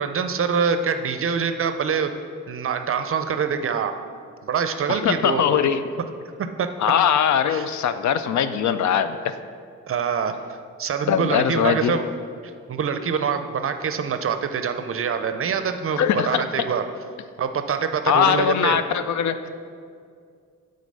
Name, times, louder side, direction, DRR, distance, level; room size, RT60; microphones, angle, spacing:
voice 1, 0.0-2.1 2.5-3.9 4.4-5.6 6.4-6.7 7.5-7.6 9.9-10.3 10.8-12.1 12.7-16.8 17.4-18.8, right 6 dB, 45° right, 8 dB, 0.5 m, -25 dB
voice 2, 4.9-5.8 6.8-9.2 11.1-11.9 16.0-16.4 18.1-19.5, left 8 dB, 70° left, 11 dB, 0.5 m, -21 dB
8.2 x 4.0 x 5.4 m, 2.2 s
cardioid pair, 95°, 30 cm